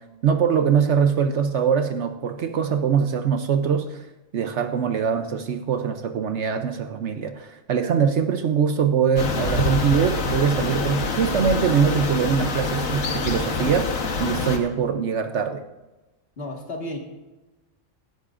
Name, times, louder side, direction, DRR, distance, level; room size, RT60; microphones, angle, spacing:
voice 1, 0.2-4.1 4.3-15.6, right 7 dB, 65° right, 8 dB, 0.9 m, -22 dB
sound 1, 9.2-14.6, left 4 dB, 75° left, 1.6 m, -26 dB
voice 2, 16.4-17.0, left 1 dB, 45° left, 1 dB, 2.0 m, -32 dB
17.0 x 13.0 x 2.5 m, 1.1 s
omnidirectional pair, 1.4 m